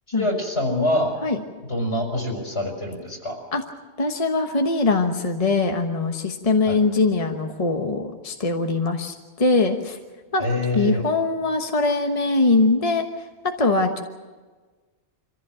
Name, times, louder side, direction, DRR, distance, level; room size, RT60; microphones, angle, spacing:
voice 1, 0.1-1.1 1.7-3.4 6.7-6.8 10.4-11.0, left 1 dB, 75° left, 1 dB, 5.6 m, -25 dB
voice 2, 4.0-9.1 9.4-10.0 10.3-10.4 10.7-13.0 13.6-14.0, left 3 dB, 35° left, 4 dB, 1.2 m, -22 dB
25.0 x 15.0 x 7.7 m, 1.3 s
omnidirectional pair, 1.1 m